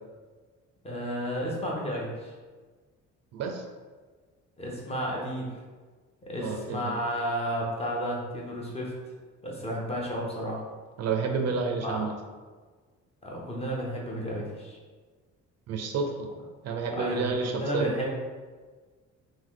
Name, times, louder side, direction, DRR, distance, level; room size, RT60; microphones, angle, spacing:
voice 1, 0.8-2.3 4.6-5.5 6.2-8.9 9.4-10.6 11.8-12.0 13.2-14.8 16.9-18.1, equal, 20° left, -3 dB, 0.7 m, -32 dB
voice 2, 3.3-3.6 6.4-7.0 11.0-12.1 15.7-16.3 16.6-17.9, right 5 dB, 55° right, 3 dB, 0.5 m, -30 dB
3.7 x 2.7 x 3.6 m, 1.4 s
cardioid pair, 170°, 32 cm